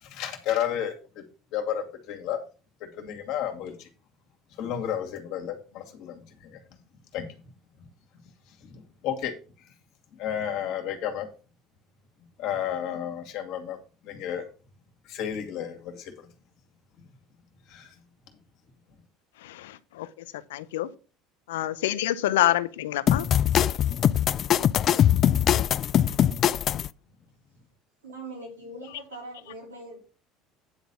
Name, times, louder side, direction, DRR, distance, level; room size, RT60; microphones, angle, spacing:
voice 1, 0.0-1.2 1.5-2.4 2.8-3.9 4.6-6.6 7.1-7.3 8.6-9.3 10.2-11.3 12.4-13.8 14.0-14.4 15.0-16.3 17.7-17.9, left 9 dB, 65° left, 2.3 m, -32 dB
voice 2, 19.4-20.1 20.3-20.9 21.5-23.2, left 14 dB, 80° left, 0.7 m, -27 dB
sound 1, 23.1-26.9, left 10 dB, 50° left, 0.4 m, -22 dB
voice 3, 28.0-30.0, right 2 dB, 90° right, 3.5 m, -41 dB
9.8 x 4.1 x 6.8 m
hypercardioid pair, 75°, 0 cm